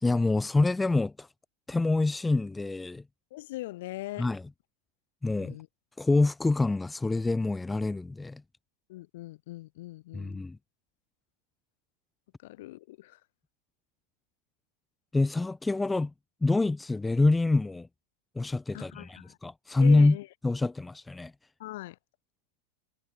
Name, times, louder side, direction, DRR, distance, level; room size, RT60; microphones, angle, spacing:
voice 1, 0.0-1.3 1.7-3.0 4.2-4.4 5.2-5.6 6.0-8.4 10.1-10.6 15.1-16.1 16.4-17.9 18.4-20.2 20.4-21.3, left 3 dB, 10° left, 0.3 m, -26 dB
voice 2, 3.3-4.3 5.4-5.7 8.9-10.4 12.4-13.2 18.7-19.4 19.8-20.3 21.6-22.0, left 18 dB, 55° left, 3.4 m, -41 dB
figure-of-eight pair, 90°, 0 cm